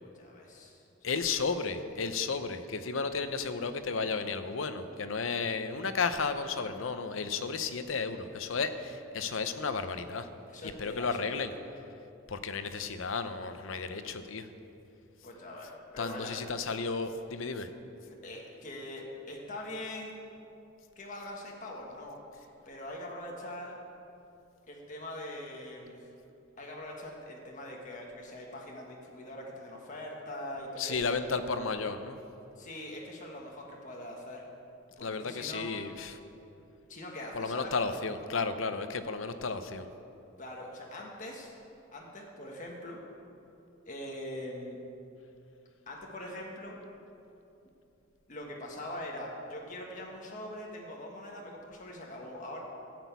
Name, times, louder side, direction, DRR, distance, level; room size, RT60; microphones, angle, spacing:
voice 1, 0.0-1.1 10.5-11.2 11.5-11.6 15.2-16.4 18.1-20.1 20.9-23.8 24.7-26.0 26.6-31.2 32.6-34.4 35.0-35.7 36.9-37.8 40.4-41.5 41.9-43.0 43.9-44.8 45.9-46.8 48.3-52.6, left 1 dB, 40° left, -1 dB, 1.6 m, -42 dB
voice 2, 1.0-10.3 10.8-11.5 12.3-14.5 16.0-17.7 30.8-32.2 35.0-36.2 37.3-39.9, left 4 dB, 70° left, 10 dB, 0.7 m, -33 dB
13.5 x 6.1 x 8.2 m, 2.8 s
head